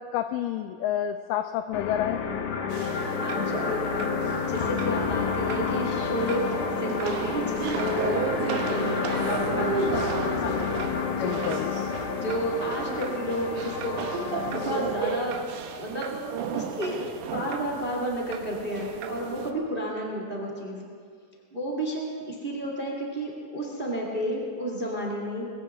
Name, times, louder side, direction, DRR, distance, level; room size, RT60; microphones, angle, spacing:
voice 1, 0.0-2.2 10.4-10.5 11.2-11.7, left 11 dB, 90° left, 9 dB, 1.9 m, -29 dB
sound 1, 1.7-15.1, left 6 dB, 65° left, 2.3 m, -30 dB
sound 2, 2.7-19.5, right 7 dB, 70° right, 2.0 m, -34 dB
voice 2, 3.1-4.1 4.5-6.5 6.8-8.3 8.6-10.7 11.1-11.6 12.0-15.4 15.8-16.1 16.5-20.9 21.5-25.5, equal, 25° right, -1 dB, 1.1 m, -32 dB
20.5 x 17.5 x 3.6 m, 2.1 s
omnidirectional pair, 4.4 m